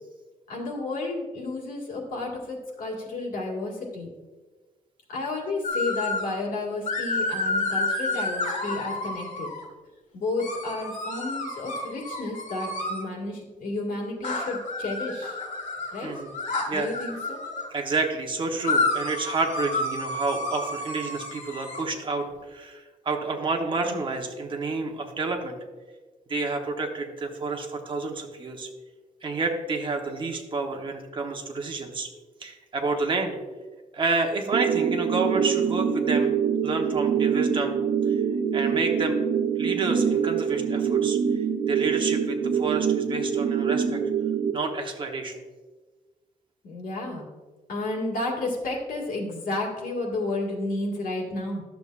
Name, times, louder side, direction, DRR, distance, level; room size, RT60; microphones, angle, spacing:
voice 1, 0.5-4.1 5.1-9.5 10.1-15.4 15.9-16.1 16.7-17.4 46.6-47.3 47.7-51.6, left 2 dB, 85° left, -2 dB, 2.0 m, -31 dB
sound 1, 5.6-6.3 6.9-9.6 10.4-13.0 14.2-17.7 18.6-21.8, left 2 dB, 60° left, 1.4 m, -30 dB
voice 2, 16.0-16.3 16.7-16.9 17.7-25.6 26.3-28.7 29.2-32.1 32.4-33.4 33.9-36.3 36.6-37.7 38.1-38.2 38.5-39.2 39.6-44.0 44.5-45.4, right 3 dB, 35° right, 3 dB, 1.0 m, -29 dB
sound 2, 34.5-44.5, right 7 dB, 60° right, 0.6 m, -25 dB
11.5 x 6.9 x 2.5 m, 1.3 s
wide cardioid pair, 145°, 14 cm